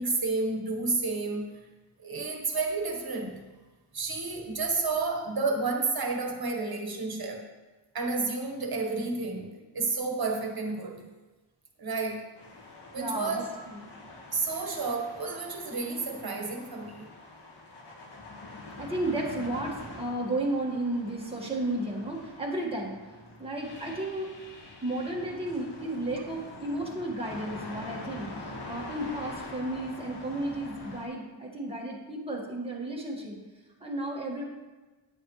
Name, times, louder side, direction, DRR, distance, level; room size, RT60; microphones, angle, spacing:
voice 1, 0.0-1.6 2.0-3.5 3.9-7.5 7.9-11.1 11.8-12.3 12.9-13.4 14.3-17.1, right 3 dB, 55° right, 2 dB, 1.4 m, -31 dB
sound 1, 12.3-31.1, left 2 dB, 65° left, 1.7 m, -45 dB
voice 2, 13.0-13.9 18.8-23.0 23.4-24.3 24.8-33.4 33.8-34.4, right 1 dB, 10° right, -3 dB, 1.7 m, -33 dB
9.0 x 7.7 x 3.2 m, 1.2 s
wide cardioid pair, 95°, 44 cm